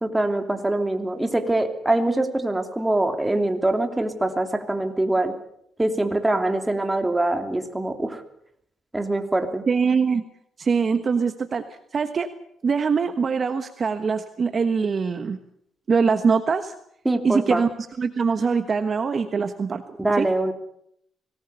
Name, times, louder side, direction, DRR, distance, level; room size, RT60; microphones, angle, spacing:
voice 1, 0.0-5.4 5.8-8.2 8.9-9.6 17.0-17.6 20.0-20.5, right 2 dB, 10° right, 6 dB, 3.0 m, -23 dB
voice 2, 9.7-10.2 10.6-11.6 11.9-12.3 12.6-15.4 15.9-16.7 17.2-17.7 18.0-19.8 20.2-20.3, right 5 dB, 45° right, 9 dB, 1.3 m, -23 dB
24.5 x 18.5 x 6.9 m, 0.73 s
cardioid pair, 90°, 0 cm